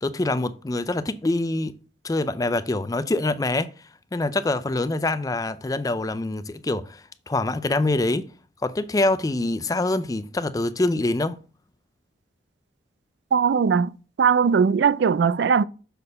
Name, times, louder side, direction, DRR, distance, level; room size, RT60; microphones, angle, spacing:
voice 1, 0.0-1.7 2.0-3.7 4.1-8.3 8.6-11.4, left 2 dB, 20° left, 0.4 m, -25 dB
voice 2, 13.3-13.9 14.2-15.6, right 6 dB, 75° right, 0.4 m, -19 dB
6.8 x 4.2 x 5.5 m
head